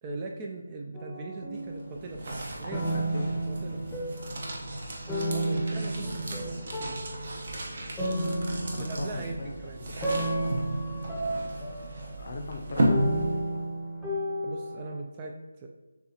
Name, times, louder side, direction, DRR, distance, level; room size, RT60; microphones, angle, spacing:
voice 1, 0.0-3.8 5.3-7.0 8.8-9.8 14.4-15.7, right 2 dB, 20° right, 1 dB, 0.3 m, -40 dB
sound 1, 0.9-2.4 2.7-4.5 5.1-14.9, right 1 dB, 5° left, 0.8 m, -33 dB
sound 2, 1.5-13.7, right 1 dB, 45° right, 0.9 m, -34 dB
voice 2, 2.9-3.4 8.7-10.2 12.2-13.6, left 3 dB, 40° left, 3 dB, 0.6 m, -40 dB
6.8 x 2.4 x 2.8 m, 1.1 s
figure-of-eight pair, 170°, 0 cm